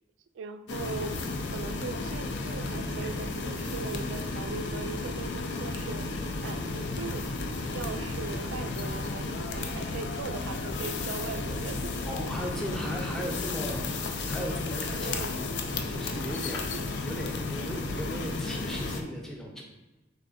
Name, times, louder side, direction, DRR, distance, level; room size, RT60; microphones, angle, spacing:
voice 1, 0.3-7.3 7.7-12.0 15.0-15.5 16.5-16.9, right 5 dB, 80° right, 10 dB, 0.3 m, -40 dB
sound 1, 0.7-19.0, left 3 dB, 65° left, 0.5 m, -33 dB
voice 2, 12.1-15.3 15.9-16.7 17.1-19.6, equal, 5° left, -2 dB, 0.7 m, -37 dB
3.7 x 3.3 x 4.1 m, 1.1 s
head